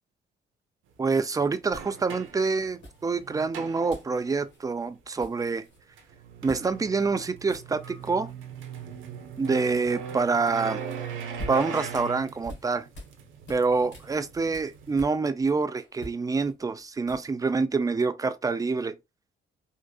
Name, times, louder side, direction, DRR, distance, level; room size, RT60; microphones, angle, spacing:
sound 1, 0.9-1.0 1.6-4.4 5.8-15.2, right 6 dB, 80° right, 0.7 m, -40 dB
sound 2, 1.0-1.2 1.7-2.3 2.8-3.4 3.9-4.2 4.4-4.6 5.0-5.8 6.5-6.7 7.0-7.1 7.4-8.1 11.0-13.2 13.5-15.5 15.8-17.5, left 1 dB, 65° left, 1.6 m, -45 dB
voice 1, 1.0-5.7 6.4-8.3 9.4-10.8 11.5-12.9 13.5-19.0, right 4 dB, 20° right, 0.4 m, -26 dB
3.6 x 2.5 x 2.3 m
cardioid pair, 90°, 20 cm